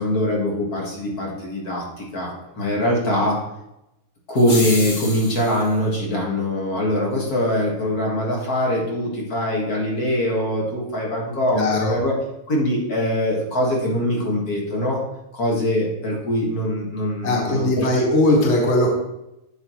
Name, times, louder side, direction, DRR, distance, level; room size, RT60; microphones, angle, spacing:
voice 1, 0.0-3.4 4.3-12.1 12.5-15.0 15.3-17.9, left 1 dB, 85° left, -2 dB, 2.3 m, -23 dB
sound 1, 4.4-5.7, left 2 dB, 35° left, 1.3 m, -30 dB
voice 2, 11.5-11.9 17.2-18.9, left 1 dB, 50° left, 0 dB, 1.6 m, -19 dB
10.5 x 6.5 x 3.1 m, 0.88 s
omnidirectional pair, 1.5 m